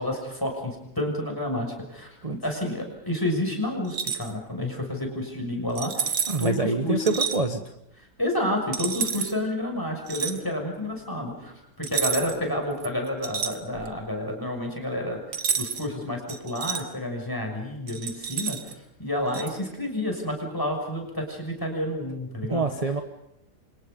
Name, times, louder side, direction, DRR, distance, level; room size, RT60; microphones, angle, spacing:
voice 1, 0.0-7.0 8.2-15.2 15.6-18.7 19.0-22.6, left 1 dB, 10° left, 2 dB, 6.5 m, -30 dB
sound 1, 3.8-4.3 5.7-6.5 7.0-7.4 8.7-9.3 10.1-10.4 11.8-12.4 12.8-14.0 15.3-15.9 16.3-16.8 17.9-18.7 19.3-19.5, right 7 dB, 65° right, 2.0 m, -29 dB
voice 2, 6.3-7.6 22.5-23.0, right 3 dB, 25° right, 7 dB, 1.2 m, -25 dB
29.5 x 26.0 x 5.4 m, 0.81 s
omnidirectional pair, 1.8 m